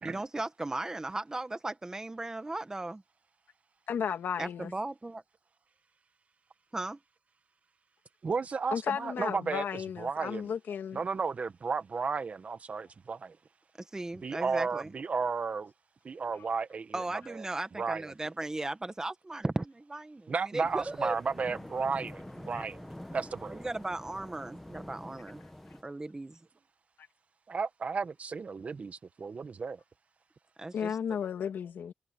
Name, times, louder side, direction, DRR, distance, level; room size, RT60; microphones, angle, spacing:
voice 1, 0.0-3.0 4.4-5.2 6.7-7.0 13.9-14.9 16.9-21.1 23.5-25.4 25.8-26.4 30.6-30.9, right 2 dB, 15° right, 1.5 m, -36 dB
voice 2, 3.9-4.7 8.7-11.0 30.7-31.9, left 7 dB, 75° left, 2.4 m, -34 dB
voice 3, 8.2-10.5 10.9-13.4 14.2-15.7 16.0-17.4 17.8-18.1 20.3-23.6 27.5-29.8, right 5 dB, 40° right, 1.3 m, -34 dB
sound 1, 20.6-25.8, left 1 dB, 5° left, 1.3 m, -46 dB
wide cardioid pair, 120°, 3 cm